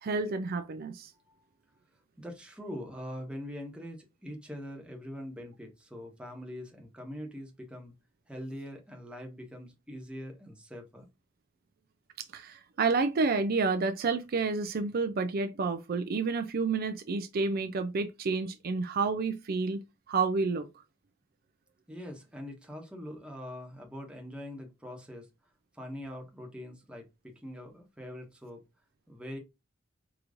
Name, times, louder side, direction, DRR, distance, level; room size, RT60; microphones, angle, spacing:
voice 1, 0.0-1.1 12.3-20.7, right 4 dB, 50° right, 0.4 m, -30 dB
voice 2, 2.2-7.9 8.3-11.1 21.9-25.3 25.7-28.6 29.1-29.4, equal, 5° right, 1.1 m, -43 dB
4.8 x 3.0 x 2.5 m
head